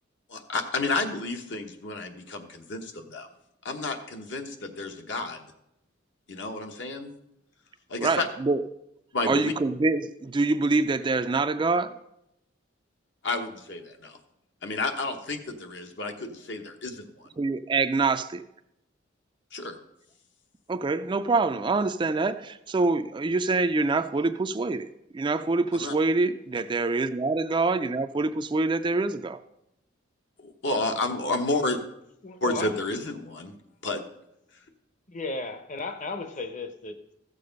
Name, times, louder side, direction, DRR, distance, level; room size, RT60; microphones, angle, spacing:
voice 1, 0.3-3.3 3.6-5.4 6.3-7.1 7.9-8.3 9.1-9.5 13.2-14.2 14.6-17.3 19.5-19.8 25.7-25.9 30.4-31.8 32.4-33.5 33.8-34.0, left 2 dB, 65° left, 1.2 m, -31 dB
voice 2, 8.0-8.6 9.3-11.9 17.4-18.4 20.7-29.4, right 3 dB, 25° right, 0.4 m, -25 dB
voice 3, 32.2-32.8 35.1-37.1, left 3 dB, 40° left, 0.9 m, -35 dB
14.5 x 6.8 x 5.3 m
head